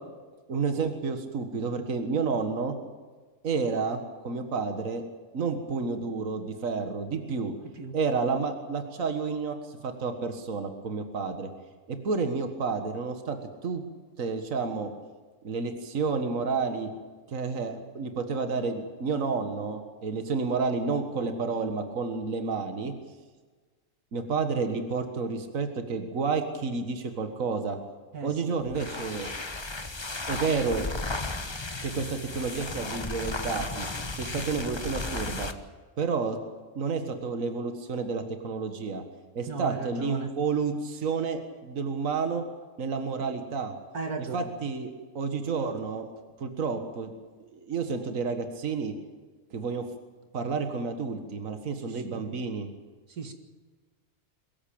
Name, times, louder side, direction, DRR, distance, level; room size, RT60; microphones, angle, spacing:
voice 1, 0.5-2.8 3.4-5.0 5.3-7.5 7.9-11.5 11.9-13.8 14.2-14.9 15.4-16.9 17.3-22.9 24.1-27.8 28.2-29.3 30.3-30.9 31.8-33.9 34.1-35.5 36.0-36.4 36.8-39.0 39.3-42.4 42.8-43.7 44.3-44.9 45.1-46.1 46.4-47.1 47.4-48.9 49.5-49.9 50.3-52.7, right 4 dB, 60° right, 7 dB, 2.0 m, -30 dB
voice 2, 7.6-8.0 28.1-28.3 39.5-40.3 43.9-44.5 51.9-52.2 53.1-53.3, right 4 dB, 75° right, 7 dB, 2.3 m, -36 dB
sound 1, 28.6-35.6, left 2 dB, 20° left, 1.1 m, -35 dB
22.5 x 15.0 x 8.7 m, 1.4 s
omnidirectional pair, 1.6 m